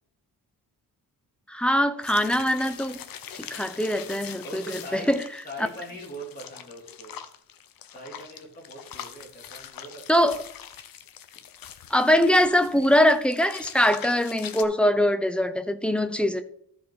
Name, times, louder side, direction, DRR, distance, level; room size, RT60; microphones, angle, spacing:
voice 1, 1.5-3.0 3.4-5.2 10.1-10.4 11.9-16.4, equal, 5° left, 9 dB, 0.6 m, -22 dB
sound 1, 2.0-14.6, left 9 dB, 65° left, 0.8 m, -43 dB
voice 2, 4.4-5.1 5.4-7.2 7.9-10.0, right 1 dB, 25° left, -2 dB, 3.3 m, -41 dB
13.5 x 5.2 x 4.1 m, 0.66 s
wide cardioid pair, 140°, 37 cm